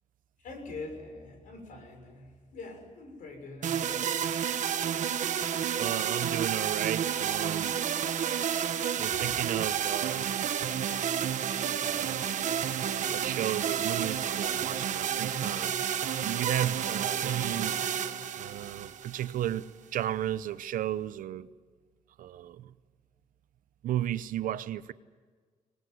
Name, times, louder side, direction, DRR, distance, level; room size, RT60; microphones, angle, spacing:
voice 1, 0.4-4.2 9.1-9.3, left 3 dB, 80° left, 6.4 m, -44 dB
sound 1, 3.6-19.6, right 9 dB, 65° right, 1.3 m, -30 dB
voice 2, 5.5-7.8 9.0-10.4 11.8-12.4 13.1-15.7 16.2-17.7 18.4-21.5 22.2-22.7 23.8-24.9, right 12 dB, 85° right, 0.9 m, -34 dB
24.5 x 20.0 x 9.4 m
cardioid pair, 135°, 14 cm